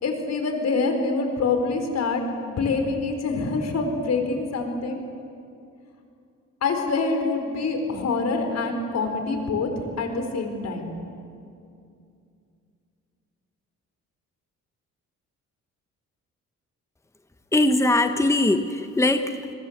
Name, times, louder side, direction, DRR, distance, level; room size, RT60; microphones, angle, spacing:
voice 1, 0.0-5.0 6.6-9.7 10.0-10.8, left 4 dB, 60° left, 5 dB, 4.6 m, -25 dB
voice 2, 17.5-19.5, left 2 dB, 10° left, 8 dB, 1.3 m, -21 dB
28.0 x 21.5 x 8.2 m, 2.5 s
cardioid pair, 90°, 30 cm